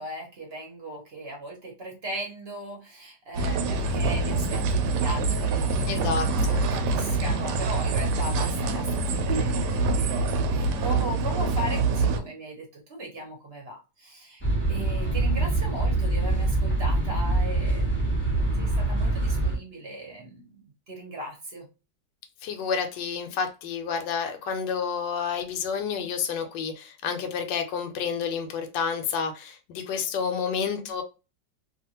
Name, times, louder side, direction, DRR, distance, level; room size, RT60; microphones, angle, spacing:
voice 1, 0.0-18.2 18.6-20.6 20.9-21.7, right 1 dB, 45° right, 1 dB, 0.9 m, -38 dB
sound 1, 3.3-12.2, right 3 dB, 75° right, 1.1 m, -25 dB
voice 2, 5.9-6.6 22.4-31.0, left 6 dB, 80° left, 5 dB, 1.3 m, -30 dB
sound 2, 14.4-19.6, right 2 dB, 10° left, 0.7 m, -24 dB
2.8 x 2.5 x 2.8 m, 0.29 s
omnidirectional pair, 1.9 m